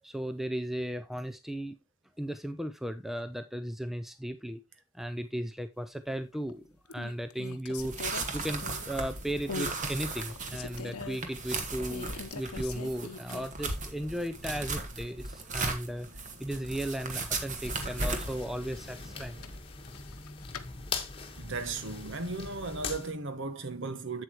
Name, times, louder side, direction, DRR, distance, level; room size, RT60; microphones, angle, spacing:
voice 1, 0.0-1.8 2.2-4.6 4.9-16.1 16.4-19.4, equal, ahead, 0.4 m, -36 dB
sound 1, 6.1-6.5 6.9-9.0 9.5-9.8 10.2-11.2 11.9-13.7 14.0-14.1 17.6-18.2 19.1-20.7, left 4 dB, 85° left, 0.9 m, -42 dB
sound 2, 7.8-19.6, right 3 dB, 35° right, 1.3 m, -37 dB
sound 3, 17.6-23.1, left 4 dB, 25° left, 1.4 m, -41 dB
voice 2, 21.4-24.2, right 3 dB, 55° right, 1.0 m, -36 dB
8.0 x 7.9 x 3.0 m
head